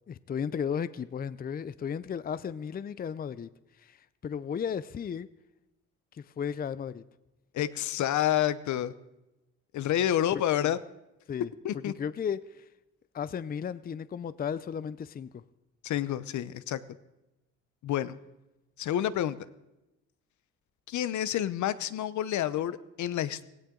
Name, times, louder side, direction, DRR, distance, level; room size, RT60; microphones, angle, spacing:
voice 1, 0.1-3.5 3.8-4.0 4.2-5.3 6.1-7.0 10.6-10.7 11.3-11.5 12.0-12.6 13.1-15.4, left 7 dB, 30° left, 16 dB, 0.5 m, -34 dB
voice 2, 7.5-8.9 9.7-10.8 11.6-11.9 15.8-16.8 17.8-18.1 18.8-19.4 20.9-23.5, left 11 dB, 70° left, 15 dB, 0.8 m, -29 dB
17.0 x 17.0 x 3.8 m, 0.96 s
cardioid pair, 90°, 30 cm